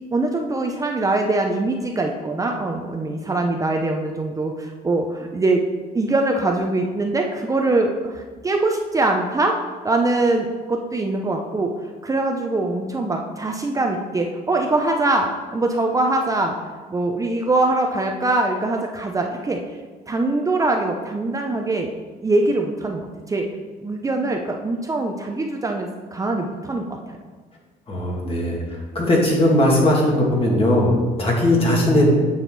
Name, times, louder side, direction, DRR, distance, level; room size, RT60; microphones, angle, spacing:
voice 1, 0.1-5.6 5.9-9.6 9.8-11.7 12.0-16.6 16.9-19.6 20.1-21.9 22.2-23.5 23.8-27.2, right 2 dB, 20° right, 2 dB, 0.7 m, -22 dB
voice 2, 27.9-28.6 28.9-32.1, left 1 dB, 35° left, -3 dB, 2.5 m, -18 dB
9.0 x 6.5 x 4.1 m, 1.4 s
cardioid pair, 110°, 17 cm